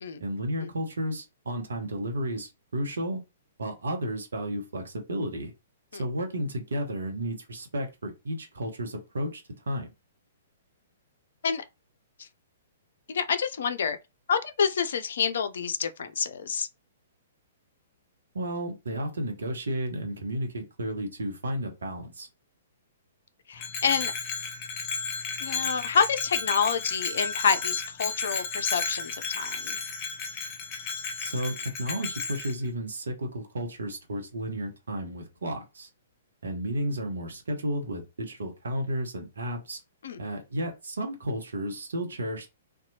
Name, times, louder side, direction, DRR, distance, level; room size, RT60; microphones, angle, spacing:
voice 1, 0.2-3.2 3.6-5.5 5.9-9.9 18.3-22.3 31.2-35.9 36.4-39.8 40.2-42.5, equal, 65° right, 0.9 m, -32 dB
voice 2, 13.1-14.0 14.3-16.7 23.5-24.1 25.4-29.8 40.0-40.2, left 6 dB, 60° left, 0.4 m, -28 dB
Bell, 23.6-32.5, left 5 dB, 30° left, 0.7 m, -33 dB
2.7 x 2.2 x 2.7 m
figure-of-eight pair, 115°, 0 cm